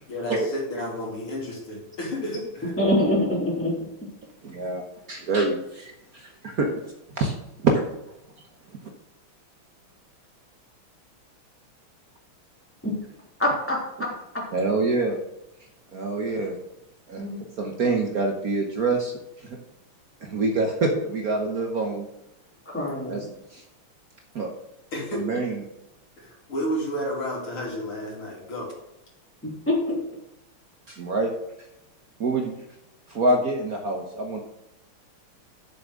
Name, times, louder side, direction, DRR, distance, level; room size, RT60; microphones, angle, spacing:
voice 1, 0.1-2.7 24.9-25.2 26.2-28.7, equal, 80° left, -3 dB, 3.9 m, -31 dB
voice 2, 2.8-3.7 12.8-12.9 13.4-13.8 14.3-14.4 17.2-17.4 22.6-23.2 29.4-30.0, left 1 dB, 5° left, -4 dB, 3.3 m, -24 dB
voice 3, 4.4-4.8 5.1-6.7 7.2-7.3 7.6-7.8 8.7-8.8 14.5-15.2 15.9-16.6 17.1-17.2 17.6-19.1 19.4-19.6 20.2-22.1 23.1-23.3 23.5-23.6 24.3-24.5 25.2-25.6 30.9-31.3 32.2-32.6 33.1-34.4, right 3 dB, 50° right, 2 dB, 1.4 m, -25 dB
7.3 x 7.0 x 6.4 m, 0.87 s
omnidirectional pair, 2.3 m